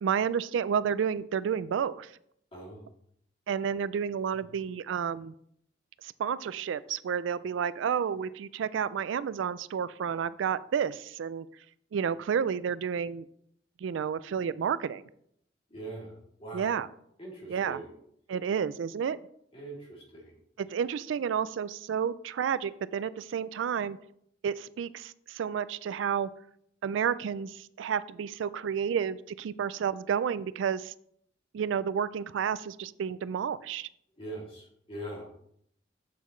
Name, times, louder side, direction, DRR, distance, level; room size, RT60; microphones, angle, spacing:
voice 1, 0.0-2.1 3.5-5.3 6.0-11.5 11.9-13.3 13.8-15.1 16.5-16.9 17.5-17.8 18.3-19.2 20.6-24.0 24.4-26.3 26.8-30.9 31.5-33.9, right 7 dB, 85° right, 17 dB, 0.3 m, -31 dB
voice 2, 2.5-2.9 4.3-4.5 15.7-16.7 17.2-17.9 19.5-20.3 34.2-35.3, right 1 dB, 30° left, -3 dB, 2.7 m, -42 dB
7.7 x 7.0 x 3.1 m, 0.70 s
head